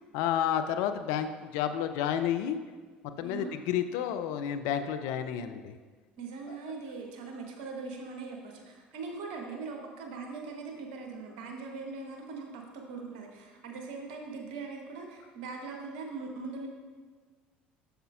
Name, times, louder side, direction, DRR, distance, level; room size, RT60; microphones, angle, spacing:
voice 1, 0.1-2.6 3.2-5.7 6.5-6.7, left 9 dB, 65° left, 9 dB, 0.4 m, -31 dB
voice 2, 6.2-16.7, right 4 dB, 70° right, 2 dB, 1.1 m, -41 dB
7.9 x 6.7 x 2.5 m, 1.5 s
hypercardioid pair, 65°, 5 cm